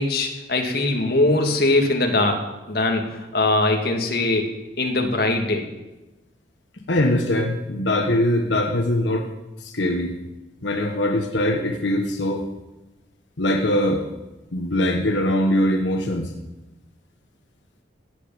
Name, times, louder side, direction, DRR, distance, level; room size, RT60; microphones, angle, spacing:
voice 1, 0.0-5.7, left 2 dB, 55° left, 2 dB, 2.0 m, -22 dB
voice 2, 6.9-9.2 9.6-10.1 10.6-12.4 13.4-14.0 14.5-16.3, left 1 dB, 85° left, 3 dB, 1.3 m, -22 dB
16.5 x 8.4 x 7.1 m, 1.0 s
head